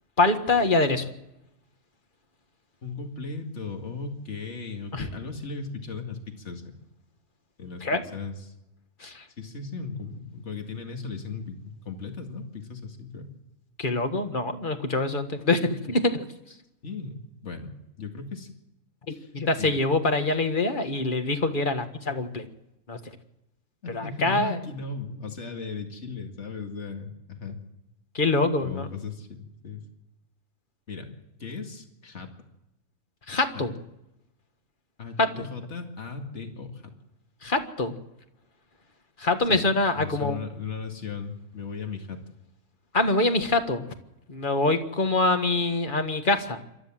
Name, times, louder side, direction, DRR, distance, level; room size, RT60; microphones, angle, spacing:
voice 1, 0.2-1.1 4.9-5.1 7.8-8.0 9.0-9.2 13.8-16.3 19.1-22.4 22.9-23.0 23.9-24.6 28.1-28.9 33.3-33.7 35.2-35.5 37.4-38.0 39.2-40.4 42.9-43.9 44.3-46.6, left 2 dB, 35° left, 7 dB, 1.7 m, -25 dB
voice 2, 2.8-6.7 7.6-8.5 9.4-11.6 11.9-13.3 16.8-17.7 18.0-18.5 19.1-19.3 19.6-19.8 23.8-27.6 28.6-29.8 30.9-31.1 31.4-32.3 33.5-33.7 35.0-36.9 39.5-39.7 39.9-42.2, left 4 dB, 55° left, 4 dB, 2.5 m, -37 dB
27.5 x 13.0 x 7.5 m, 0.90 s
omnidirectional pair, 1.5 m